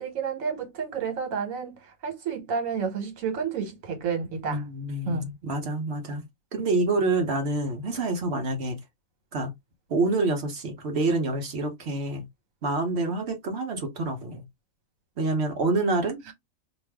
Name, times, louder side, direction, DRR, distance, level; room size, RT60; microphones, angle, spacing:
voice 1, 0.0-4.6 5.1-5.3, right 6 dB, 75° right, 1.4 m, -30 dB
voice 2, 4.5-6.2 6.5-8.8 9.3-9.5 9.9-12.2 12.6-14.4 15.2-16.3, right 2 dB, 55° right, 0.9 m, -27 dB
2.6 x 2.3 x 3.3 m
omnidirectional pair, 1.4 m